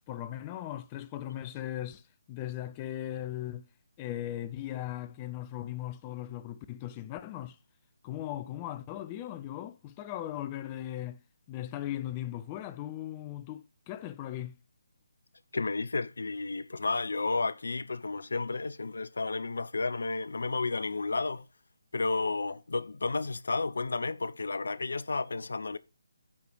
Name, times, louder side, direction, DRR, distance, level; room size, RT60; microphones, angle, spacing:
voice 1, 0.0-3.7 4.0-7.6 8.0-14.6, left 12 dB, 20° left, 0.5 m, -38 dB
voice 2, 15.5-21.5 21.9-25.8, left 3 dB, 60° left, 0.6 m, -32 dB
8.7 x 4.9 x 4.7 m
figure-of-eight pair, 145°, 0 cm